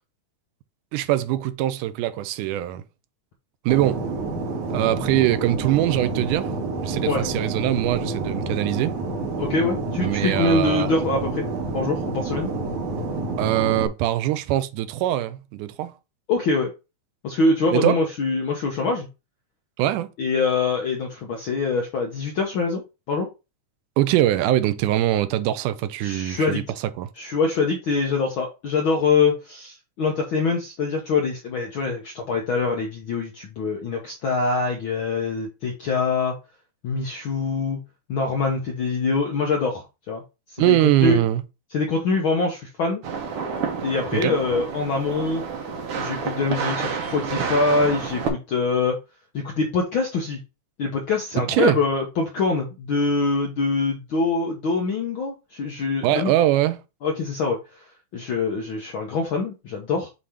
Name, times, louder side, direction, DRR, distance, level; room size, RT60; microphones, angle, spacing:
voice 1, 0.9-2.8 3.7-4.0 4.7-6.5 6.8-8.9 10.0-10.9 13.4-15.9 17.7-18.0 19.8-20.1 24.0-27.1 40.6-41.4 44.1-44.4 51.5-51.8 56.0-56.8, right 13 dB, 90° right, 2.2 m, -22 dB
Fixed-wing aircraft airplane, 3.7-13.9, right 3 dB, 75° right, 2.7 m, -28 dB
voice 2, 9.4-11.5 11.7-12.5 16.3-16.7 17.2-19.1 20.2-22.8 23.1-23.3 26.0-26.6 27.2-36.3 36.8-37.8 38.1-40.2 40.5-40.8 41.0-41.2 41.7-43.0 43.8-45.4 46.0-49.0 49.3-50.4 50.8-56.3 57.0-57.6 58.1-60.1, left 4 dB, 75° left, 1.2 m, -24 dB
sound 1, 43.0-48.3, right 5 dB, 60° right, 1.7 m, -29 dB
7.4 x 2.9 x 4.8 m
omnidirectional pair, 3.5 m